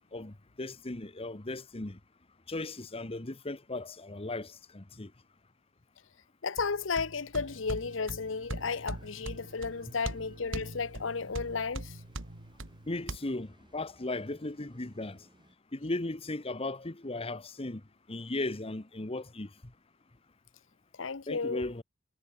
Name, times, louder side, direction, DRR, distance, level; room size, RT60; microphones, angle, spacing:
voice 1, 0.1-2.0 2.5-5.1 9.9-10.0 12.9-15.2 15.7-17.8 18.1-19.5 21.3-21.8, left 2 dB, 30° left, 1.2 m, -37 dB
voice 2, 6.4-11.9 21.0-21.7, left 5 dB, 80° left, 0.9 m, -33 dB
sound 1, 6.6-13.2, right 1 dB, 85° right, 2.3 m, -41 dB
sound 2, 7.4-15.6, right 1 dB, 25° right, 3.0 m, -60 dB
head